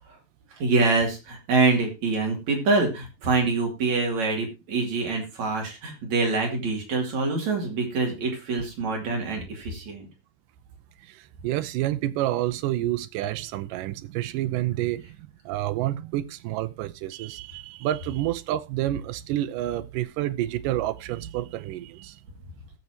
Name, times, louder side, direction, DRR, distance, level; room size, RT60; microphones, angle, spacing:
voice 1, 0.5-10.1, right 3 dB, 55° right, 3.7 m, -25 dB
voice 2, 11.1-22.2, right 14 dB, 75° right, 2.2 m, -29 dB
19.5 x 7.0 x 2.9 m
omnidirectional pair, 4.0 m